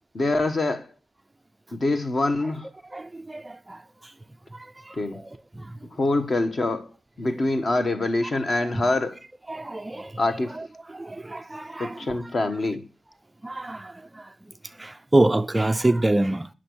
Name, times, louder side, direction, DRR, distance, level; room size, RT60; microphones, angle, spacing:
voice 1, 0.1-0.9 1.7-2.7 5.0-5.2 6.0-6.9 7.2-9.2 10.2-10.6 11.8-12.9, left 2 dB, 40° left, 1.3 m, -25 dB
voice 2, 2.9-4.1 4.5-5.7 8.6-8.9 9.5-10.2 10.5-12.3 13.4-14.3 14.6-16.5, right 2 dB, 15° right, 0.4 m, -27 dB
10.0 x 6.2 x 6.2 m
wide cardioid pair, 140°, 0 cm